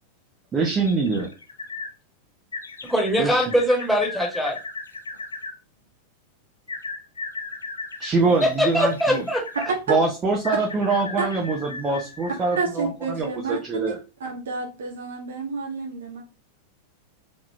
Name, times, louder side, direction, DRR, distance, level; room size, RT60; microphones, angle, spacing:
voice 1, 0.5-1.3 3.2-3.4 8.0-9.2 9.9-14.0, right 3 dB, 20° right, -1 dB, 0.9 m, -24 dB
sound 1, 0.8-1.9 2.5-5.5 6.7-9.8 10.4-12.7 13.2-13.3, left 3 dB, 75° left, 0.5 m, -36 dB
voice 2, 2.8-4.6 8.4-9.7, equal, ahead, -2 dB, 1.5 m, -22 dB
voice 3, 12.5-13.9 14.2-16.2, right 4 dB, 65° right, 0 dB, 1.3 m, -30 dB
3.6 x 3.2 x 3.2 m, 0.30 s
figure-of-eight pair, 90°, 0 cm